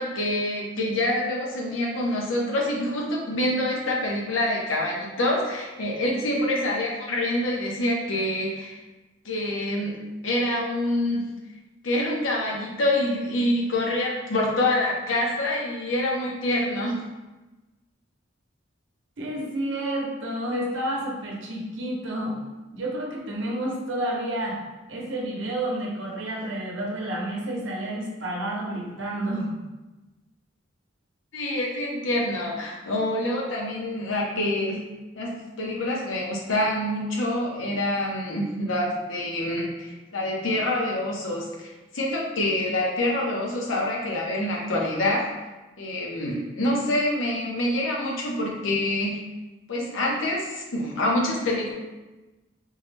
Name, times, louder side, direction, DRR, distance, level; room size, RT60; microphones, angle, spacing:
voice 1, 0.0-8.8 9.2-10.0 10.2-11.3 11.8-17.0 31.3-34.8 35.2-41.7 41.9-45.2 45.8-49.2 49.7-51.7, left 1 dB, 85° left, -2 dB, 0.7 m, -26 dB
voice 2, 19.2-22.3 22.7-24.6 24.9-29.6, right 1 dB, 75° right, -2 dB, 0.7 m, -30 dB
3.7 x 2.1 x 3.2 m, 1.1 s
head